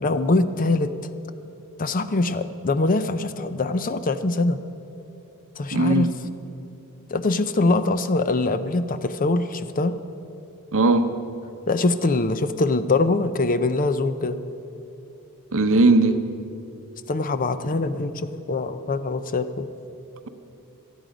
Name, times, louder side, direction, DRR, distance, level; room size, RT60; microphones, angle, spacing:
voice 1, 0.0-0.9 1.8-4.6 5.6-6.1 7.1-10.0 11.7-14.4 17.1-19.7, left 2 dB, 40° left, 11 dB, 0.6 m, -23 dB
voice 2, 5.7-6.1 10.7-11.1 15.5-16.2, right 2 dB, 65° right, 8 dB, 0.9 m, -18 dB
18.5 x 12.5 x 5.1 m, 2.8 s
head